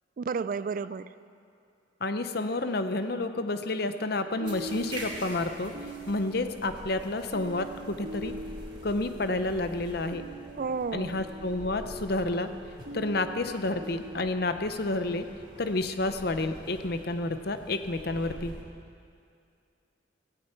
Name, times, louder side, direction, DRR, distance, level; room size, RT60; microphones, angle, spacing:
voice 1, 0.2-1.1 10.6-11.2, right 5 dB, 45° right, 15 dB, 0.3 m, -32 dB
voice 2, 2.0-5.7 6.1-8.3 8.8-10.2 10.9-12.5 12.9-15.3 15.6-18.5, left 2 dB, 55° left, 9 dB, 0.8 m, -30 dB
sound 1, 4.3-14.3, right 1 dB, 85° right, 1.6 m, -43 dB
sound 2, 4.4-18.6, right 1 dB, 25° right, 2.5 m, -46 dB
17.0 x 16.0 x 4.5 m, 2.4 s
head